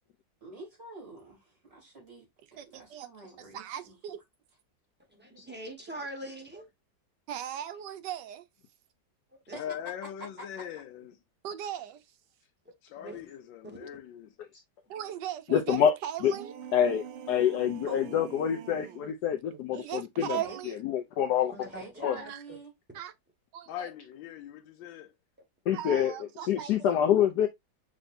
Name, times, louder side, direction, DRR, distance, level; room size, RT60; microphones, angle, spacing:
voice 1, 0.4-4.0 9.5-9.6 10.4-10.5 17.9-18.3 20.4-20.6 21.7-22.7, right 2 dB, 35° right, 3.8 m, -46 dB
voice 2, 2.5-3.1 3.4-4.2 7.3-8.4 11.4-12.0 14.9-16.6 19.5-20.8 22.1-22.4 22.9-23.1 23.5-23.9 25.7-26.7, right 10 dB, 75° right, 1.3 m, -38 dB
voice 3, 5.1-6.7 9.5-9.6 12.9-13.2 13.6-13.9 21.5-22.6, right 1 dB, 5° right, 1.0 m, -43 dB
voice 4, 9.5-11.2 12.8-14.3 23.7-25.1, left 10 dB, 90° left, 1.4 m, -41 dB
voice 5, 15.5-15.9 16.2-16.3 16.7-20.4 20.9-21.5 22.0-22.2 25.7-26.1 26.5-27.5, left 9 dB, 70° left, 1.1 m, -26 dB
sound 1, 16.2-19.2, right 9 dB, 90° right, 1.4 m, -44 dB
6.2 x 3.3 x 2.5 m
omnidirectional pair, 2.0 m